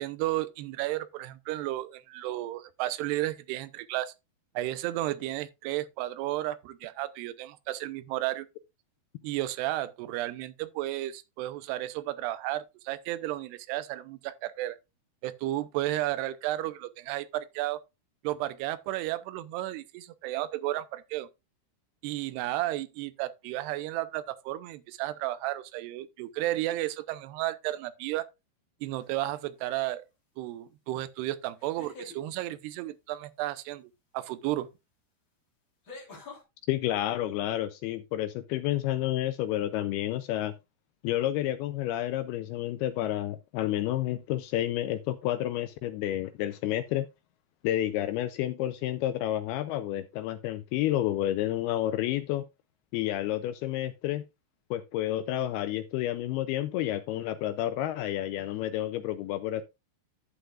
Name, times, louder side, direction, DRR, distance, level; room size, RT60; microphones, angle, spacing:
voice 1, 0.0-4.1 4.6-8.5 9.2-14.8 15.2-17.8 18.2-21.3 22.0-28.3 28.8-30.0 30.4-34.7, right 15 dB, 80° right, 2.6 m, -33 dB
sound 1, 29.0-29.4 31.6-32.2 34.5-34.6 35.8-36.4, left 3 dB, 30° left, 3.6 m, -46 dB
voice 2, 36.7-40.5 41.0-47.1 47.6-52.4 52.9-54.2 54.7-59.6, left 13 dB, 85° left, 2.2 m, -30 dB
11.5 x 8.0 x 2.4 m
omnidirectional pair, 5.1 m